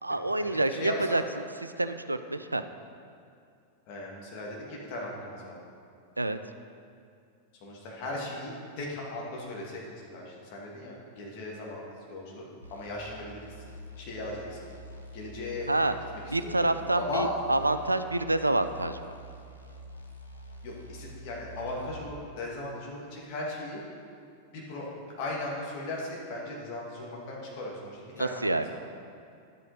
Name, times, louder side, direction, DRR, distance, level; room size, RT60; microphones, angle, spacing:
voice 1, 0.0-2.6 6.2-6.4 15.7-15.9 16.3-19.1 28.2-28.7, right 2 dB, 85° right, 10 dB, 0.4 m, -28 dB
voice 2, 0.7-1.2 3.9-5.5 7.6-9.8 10.1-11.8 12.1-12.4 12.7-13.4 14.0-14.6 15.1-15.7 16.4-16.7 16.9-17.3 20.6-23.8 24.5-24.9 25.2-28.8, left 2 dB, 45° left, -3 dB, 2.3 m, -37 dB
sound 1, 12.6-22.1, left 1 dB, 85° left, 0.8 m, -47 dB
11.0 x 8.1 x 4.2 m, 2.4 s
figure-of-eight pair, 90°, 0 cm